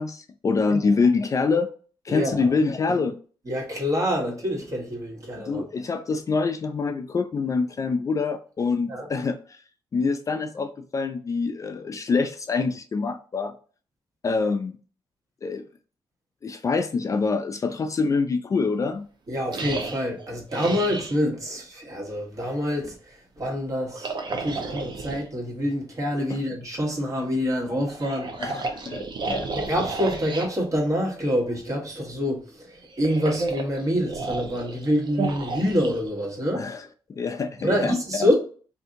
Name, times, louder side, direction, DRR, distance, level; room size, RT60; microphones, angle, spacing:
voice 1, 0.0-1.7 2.0-3.2 5.4-9.6 9.9-13.5 14.2-14.8 15.4-15.6 16.4-19.1 26.3-26.4 28.4-29.5 36.6-37.9, left 4 dB, 35° left, 0.3 m, -25 dB
voice 2, 2.1-2.5 3.5-5.6 8.9-9.1 19.3-28.3 29.5-36.6 37.6-38.3, equal, 35° right, 1.3 m, -26 dB
sound 1, 19.5-21.2 23.9-25.2 27.8-30.5 32.7-36.6, right 3 dB, 55° right, 0.6 m, -32 dB
2.7 x 2.6 x 3.6 m
cardioid pair, 95°, 9 cm